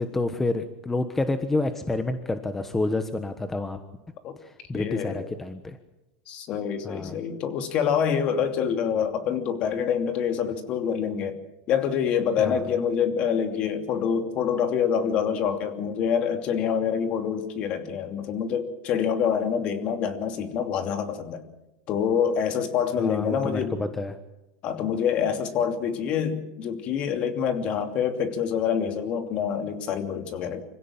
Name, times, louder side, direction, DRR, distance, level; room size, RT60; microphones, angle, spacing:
voice 1, 0.0-3.8 4.4-5.8 6.8-7.2 12.4-12.6 23.0-24.2, left 2 dB, 10° left, 9 dB, 1.2 m, -29 dB
voice 2, 4.7-5.3 6.3-11.4 11.7-21.4 21.9-23.7 24.6-30.6, left 7 dB, 45° left, 7 dB, 2.9 m, -26 dB
25.5 x 16.5 x 8.9 m, 0.96 s
supercardioid pair, 140°, 3 cm